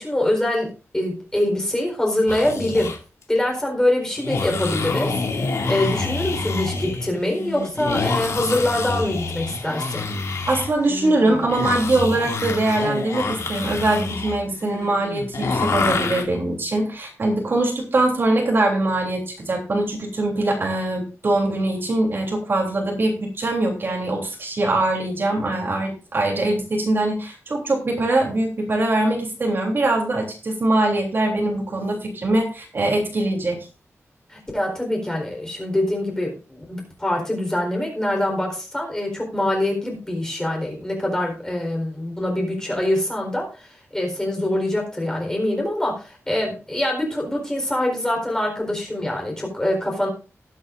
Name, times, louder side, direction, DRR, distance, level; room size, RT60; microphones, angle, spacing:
voice 1, 0.0-2.9 3.3-5.2 5.7-10.1 34.3-50.1, left 1 dB, 10° left, 0 dB, 4.2 m, -24 dB
sound 1, 2.2-3.0 4.2-16.2, left 3 dB, 70° left, 2.4 m, -27 dB
voice 2, 10.5-33.6, right 2 dB, 45° right, 1 dB, 3.2 m, -22 dB
19.5 x 8.5 x 2.6 m, 0.34 s
wide cardioid pair, 160°, 5 cm